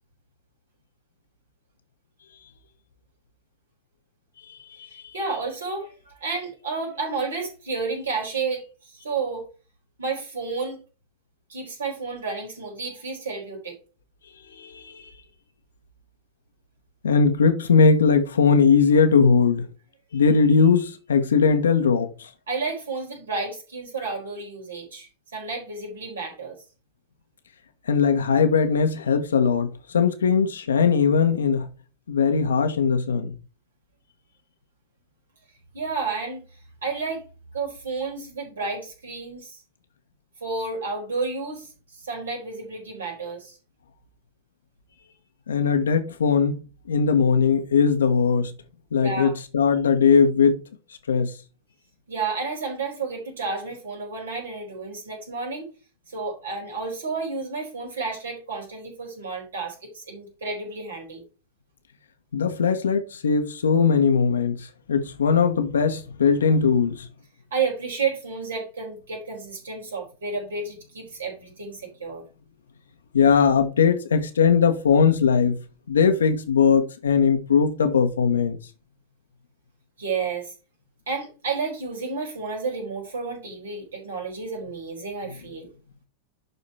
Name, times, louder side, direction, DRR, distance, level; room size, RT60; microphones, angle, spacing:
voice 1, 5.1-9.4 10.0-10.8 11.5-13.8 22.5-26.6 35.7-36.4 36.8-37.2 37.5-39.6 40.4-43.6 49.0-49.3 52.1-55.7 56.1-61.2 67.5-72.2 80.0-80.5 81.1-85.7, right 4 dB, 65° right, 4.4 m, -31 dB
voice 2, 14.5-15.1 17.0-19.7 20.1-22.3 27.9-31.7 32.1-33.3 45.5-46.6 46.9-48.5 48.9-50.6 51.1-51.3 62.3-67.1 73.1-75.6 75.9-78.6, left 6 dB, 70° left, 1.3 m, -20 dB
11.5 x 4.3 x 4.3 m
figure-of-eight pair, 90°, 0 cm